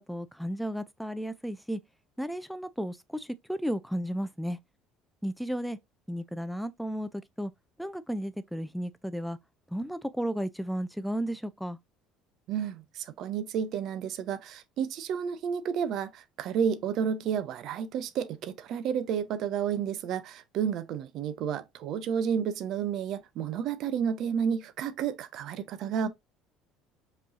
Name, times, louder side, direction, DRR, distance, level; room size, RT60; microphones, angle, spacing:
voice 1, 0.0-1.8 2.2-4.6 5.2-5.8 6.1-7.1 7.4-7.5 7.8-9.4 9.7-11.8, equal, ahead, 0.4 m, -33 dB
voice 2, 12.5-26.1, right 7 dB, 55° right, 0.5 m, -31 dB
5.2 x 3.1 x 2.6 m
hypercardioid pair, 65°, 0 cm